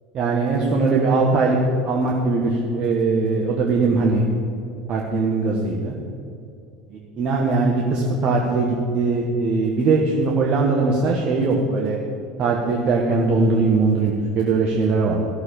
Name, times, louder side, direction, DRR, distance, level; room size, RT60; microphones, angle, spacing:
voice 1, 0.1-1.6 1.8-4.2 4.9-6.0 7.2-12.0 12.4-15.2, right 3 dB, 40° right, -1 dB, 1.5 m, -20 dB
14.0 x 6.8 x 7.1 m, 2.6 s
figure-of-eight pair, 70°, 3 cm